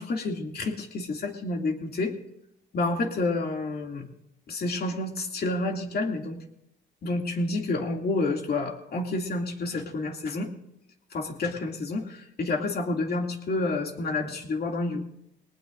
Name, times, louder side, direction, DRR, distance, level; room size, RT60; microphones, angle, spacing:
voice 1, 0.0-2.1 2.7-4.1 4.5-6.4 7.0-10.5 11.1-15.0, left 2 dB, 50° left, 2 dB, 2.6 m, -29 dB
21.5 x 18.5 x 2.6 m, 0.79 s
cardioid pair, 90°, 20 cm